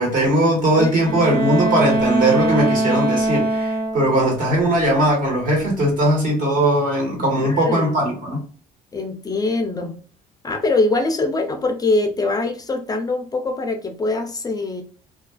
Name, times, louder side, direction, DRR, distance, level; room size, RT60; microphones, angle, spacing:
voice 1, 0.0-8.4, right 1 dB, 55° right, 1.4 m, -19 dB
voice 2, 0.8-1.2 7.3-8.0 8.9-10.0 10.4-14.8, left 2 dB, 20° left, 0.4 m, -23 dB
Bowed string instrument, 0.9-4.3, right 2 dB, 75° right, 1.1 m, -22 dB
2.4 x 2.3 x 2.2 m
cardioid pair, 110°, 17 cm